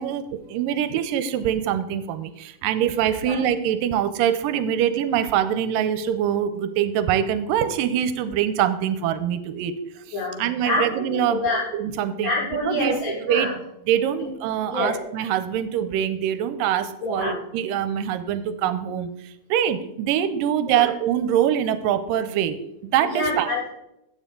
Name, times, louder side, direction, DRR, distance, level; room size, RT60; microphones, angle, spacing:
voice 1, 0.0-9.7 10.4-11.5 11.7-12.3 12.7-13.0 13.3-13.5 13.9-19.1 19.5-23.5, right 10 dB, 80° right, 11 dB, 2.1 m, -24 dB
voice 2, 10.1-11.6 12.2-13.5 14.1-14.3 14.6-15.0 17.0-17.4 20.7-20.9 23.0-23.7, left 2 dB, 65° left, -8 dB, 6.9 m, -27 dB
13.5 x 8.9 x 3.8 m, 0.85 s
omnidirectional pair, 4.3 m